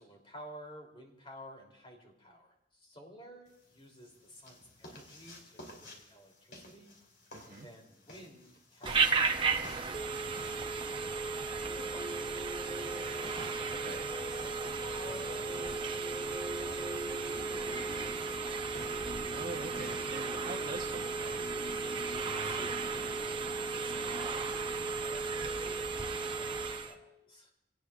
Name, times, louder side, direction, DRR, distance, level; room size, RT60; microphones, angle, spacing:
voice 1, 0.0-7.0 7.5-10.7 11.3-13.0 13.6-18.5 22.2-27.5, equal, 30° left, 1 dB, 3.2 m, -54 dB
sound 1, 3.5-22.0, equal, 65° left, 3.3 m, -55 dB
voice 2, 7.3-7.7 13.7-14.1 19.3-21.6, right 3 dB, 50° right, -2 dB, 1.1 m, -44 dB
Telephone, 8.9-27.0, right 4 dB, 25° right, 0.8 m, -34 dB
sound 2, 11.7-25.4, equal, ahead, 4.0 m, -47 dB
26.5 x 18.5 x 2.5 m, 0.80 s
head